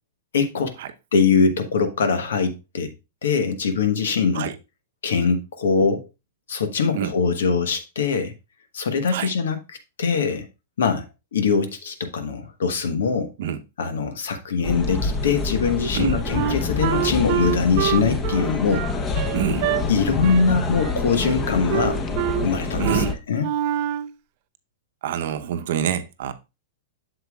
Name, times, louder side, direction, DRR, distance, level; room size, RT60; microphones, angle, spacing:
voice 1, 0.3-0.8 1.1-2.9 3.2-4.5 5.0-6.0 6.5-8.3 8.7-9.6 10.0-10.5 10.8-13.3 13.8-18.9 19.9-22.1 22.4-23.0 23.3-23.5, left 5 dB, 85° left, 1.2 m, -22 dB
sound 1, 14.6-23.1, left 3 dB, 25° left, 1.0 m, -26 dB
Wind instrument woodwind instrument, 16.3-19.8 20.2-20.5 20.7-21.4 21.7-22.5 22.8-23.1 23.4-24.1, right 14 dB, 50° right, 0.4 m, -26 dB
voice 2, 19.3-19.7 22.8-23.2 25.0-26.3, right 8 dB, 65° right, 0.8 m, -26 dB
8.0 x 6.8 x 2.4 m
hypercardioid pair, 130°, 0 cm